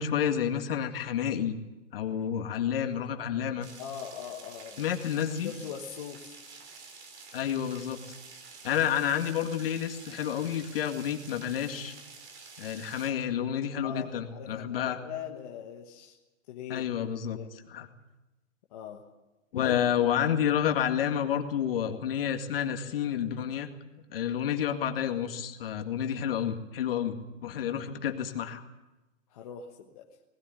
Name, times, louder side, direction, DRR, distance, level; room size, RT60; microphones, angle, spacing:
voice 1, 0.0-1.6 1.9-3.7 4.8-5.5 7.3-8.0 8.6-11.9 12.6-15.0 16.7-17.4 17.7-17.9 19.5-23.7 24.1-28.6, left 9 dB, 45° left, 5 dB, 2.1 m, -30 dB
sound 1, 3.6-13.1, right 4 dB, 55° right, 4.7 m, -49 dB
voice 2, 3.8-4.8 5.3-6.4 13.8-16.2 16.5-16.9 17.3-17.5 18.7-19.1 19.6-19.8 29.3-30.1, left 8 dB, 30° left, 0 dB, 1.3 m, -41 dB
19.5 x 18.0 x 9.3 m, 1.0 s
hypercardioid pair, 170°, 39 cm